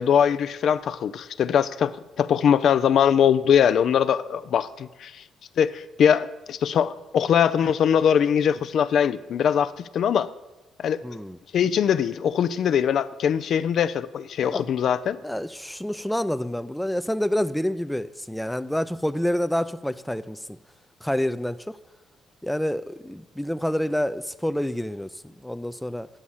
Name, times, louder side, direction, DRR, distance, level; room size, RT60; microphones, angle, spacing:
voice 1, 0.0-5.2 5.6-10.3 10.8-11.0 11.5-15.2, left 8 dB, 65° left, 0.4 m, -22 dB
voice 2, 11.0-11.4 14.4-14.7 15.2-20.6 21.0-21.8 22.4-26.1, equal, 5° left, 0.4 m, -28 dB
9.9 x 6.2 x 7.1 m
cardioid pair, 90°, 0 cm